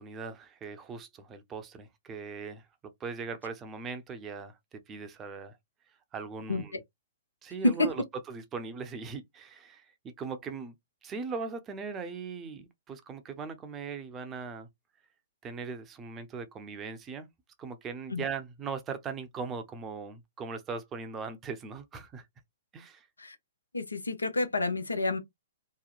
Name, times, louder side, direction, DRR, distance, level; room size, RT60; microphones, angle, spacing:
voice 1, 0.0-2.6 3.0-5.6 6.1-6.8 7.4-10.7 11.0-14.7 15.4-17.3 17.6-22.3 22.7-23.1, right 5 dB, 20° right, 0.6 m, -39 dB
voice 2, 23.7-25.2, left 3 dB, 90° left, 0.7 m, -30 dB
3.0 x 2.0 x 2.4 m
figure-of-eight pair, 120°, 0 cm